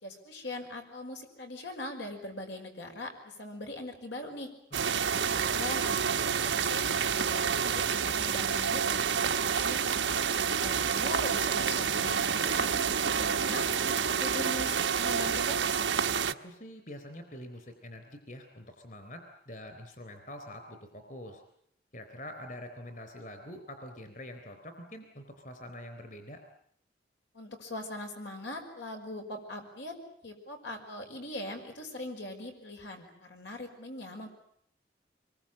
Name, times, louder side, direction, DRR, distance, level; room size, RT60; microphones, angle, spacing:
voice 1, 0.0-4.5 5.0-5.2 5.4-9.8 10.4-12.8 13.2-15.9 27.3-30.0 30.2-34.3, left 1 dB, 85° left, 3 dB, 5.8 m, -41 dB
voice 2, 4.7-5.2 16.4-21.4 21.9-26.4, left 1 dB, 45° left, 6 dB, 3.8 m, -45 dB
sound 1, 4.7-16.3, right 6 dB, 90° right, 1.0 m, -28 dB
25.5 x 23.0 x 8.8 m, 0.70 s
head